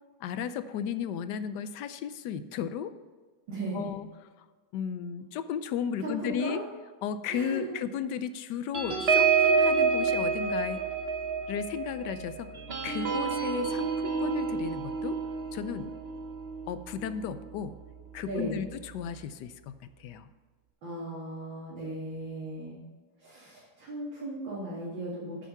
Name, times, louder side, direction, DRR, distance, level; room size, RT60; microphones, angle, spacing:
voice 1, 0.2-3.0 3.7-4.1 4.4-4.5 4.7-6.6 7.0-10.8 11.5-12.5 12.8-15.2 15.5-15.9 16.7-17.8 18.1-20.3, left 8 dB, 75° left, 12 dB, 1.0 m, -34 dB
voice 2, 3.5-3.9 6.0-6.6 7.3-7.8 18.3-18.6 20.8-22.8 23.2-25.5, right 1 dB, 65° right, -7 dB, 2.9 m, -36 dB
sound 1, 8.7-17.7 18.1-18.3 18.6-18.9, right 5 dB, 40° right, 1.0 m, -29 dB
9.0 x 7.0 x 5.6 m, 1.4 s
omnidirectional pair, 2.2 m